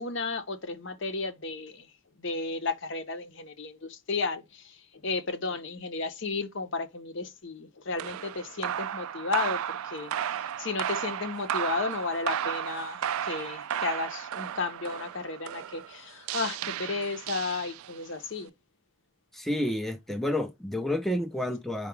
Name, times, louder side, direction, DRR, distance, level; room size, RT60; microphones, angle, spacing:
voice 1, 0.0-1.9 2.2-4.8 5.0-9.6 9.9-10.1 10.6-18.5, left 3 dB, 60° left, 0.7 m, -33 dB
sound 1, 8.0-18.1, right 9 dB, 80° right, 0.3 m, -34 dB
voice 2, 19.3-21.9, left 1 dB, ahead, 0.4 m, -30 dB
4.6 x 2.3 x 4.9 m
head